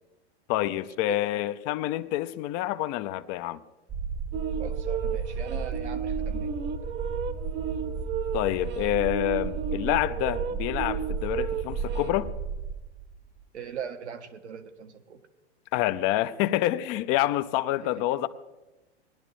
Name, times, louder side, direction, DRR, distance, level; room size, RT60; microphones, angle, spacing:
voice 1, 0.5-3.6 8.3-12.3 15.7-18.3, left 15 dB, 40° left, 0.7 m, -27 dB
voice 2, 1.0-1.4 4.6-6.6 13.5-15.2, right 8 dB, 75° right, 1.3 m, -40 dB
sound 1, 3.9-13.4, right 5 dB, 10° right, 0.5 m, -33 dB
sound 2, 4.3-12.1, right 8 dB, 30° right, 1.0 m, -34 dB
20.0 x 11.0 x 3.2 m
hypercardioid pair, 105°, 34 cm